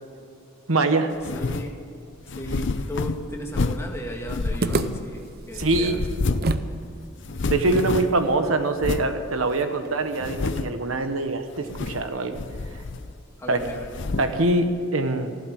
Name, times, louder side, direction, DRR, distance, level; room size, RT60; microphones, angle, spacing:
voice 1, 0.7-1.1 5.5-6.0 7.5-12.4 12.7-12.8 13.5-13.6 14.2-15.4, right 2 dB, 80° right, 8 dB, 1.2 m, -24 dB
sound 1, 1.2-1.7 2.3-3.9 4.3-5.2 5.6-6.6 6.8-6.9 7.2-8.3 8.8-9.1 9.6-9.7 10.2-10.8 11.6-12.1 12.3-13.2 13.6-14.4, left 3 dB, 60° left, 0.6 m, -29 dB
voice 2, 1.3-1.7 2.3-6.0 6.3-6.6 7.8-8.1 13.4-13.9, equal, 15° left, 0 dB, 1.9 m, -36 dB
sound 2, 4.6-6.8 7.0-7.1 7.7-10.8, right 2 dB, 45° right, 0.7 m, -31 dB
15.0 x 12.0 x 7.7 m, 2.5 s
head